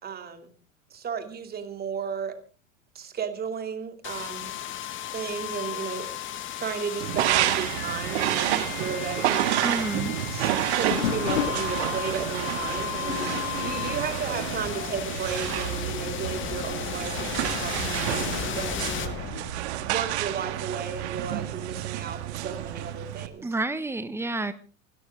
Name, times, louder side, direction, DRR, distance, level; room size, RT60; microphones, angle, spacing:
voice 1, 0.0-0.5 0.9-2.3 2.9-4.5 5.1-6.3 6.6-9.8 10.3-19.2 19.8-23.5, right 6 dB, 25° right, 7 dB, 2.8 m, -34 dB
sound 1, 4.0-19.9, left 12 dB, 30° left, 1.7 m, -34 dB
sound 2, 7.0-23.3, right 13 dB, 55° right, 1.8 m, -30 dB
voice 2, 9.6-10.2 23.4-24.5, right 2 dB, 5° right, 13 dB, 1.5 m, -29 dB
sound 3, 10.9-15.0 15.4-15.7 16.3-16.4 17.2-19.9 21.7-22.2, left 7 dB, 70° left, 2.3 m, -35 dB
26.5 x 13.5 x 3.7 m, 0.36 s
figure-of-eight pair, 85°, 39 cm